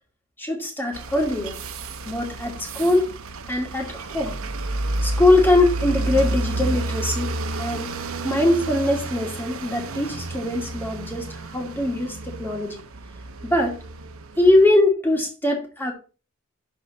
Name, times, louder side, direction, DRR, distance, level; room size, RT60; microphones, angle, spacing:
voice 1, 0.4-1.6 2.0-3.1 3.5-4.4 5.0-7.9 8.2-12.8 13.4-13.8 14.4-15.9, left 2 dB, 10° left, 2.4 m, -22 dB
sound 1, 0.9-14.7, right 2 dB, 75° right, 0.8 m, -30 dB
12.0 x 4.2 x 4.3 m
head